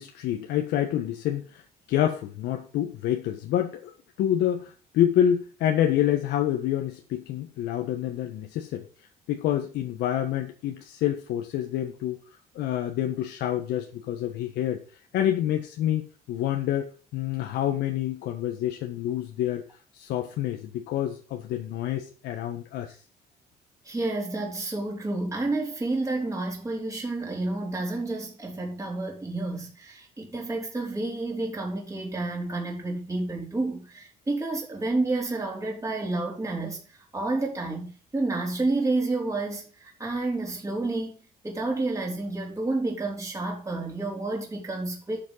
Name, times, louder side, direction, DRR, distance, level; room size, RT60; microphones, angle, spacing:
voice 1, 0.0-3.9 4.2-8.8 9.3-12.2 12.5-14.8 15.1-16.9 17.1-19.6 19.9-23.0, left 11 dB, 80° left, 1.5 m, -27 dB
voice 2, 23.8-41.2 41.4-45.2, right 2 dB, 20° right, 4.4 m, -30 dB
12.0 x 7.5 x 5.6 m
cardioid pair, 110°, 17 cm